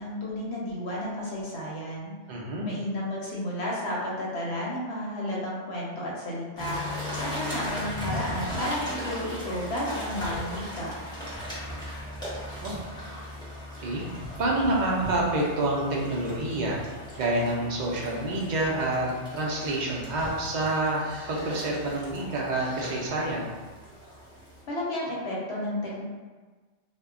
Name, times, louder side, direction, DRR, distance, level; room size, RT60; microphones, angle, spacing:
voice 1, 0.0-2.1 2.6-6.8 7.2-10.9 24.7-26.0, left 1 dB, 70° left, -4 dB, 0.8 m, -32 dB
voice 2, 2.3-2.7 12.6-12.7 13.8-14.0 14.4-16.8 17.2-21.0 21.3-23.6, right 2 dB, 55° right, -3 dB, 0.5 m, -27 dB
sound 1, 6.6-24.6, left 1 dB, 5° left, 0.5 m, -38 dB
2.1 x 2.1 x 3.5 m, 1.4 s
omnidirectional pair, 1.2 m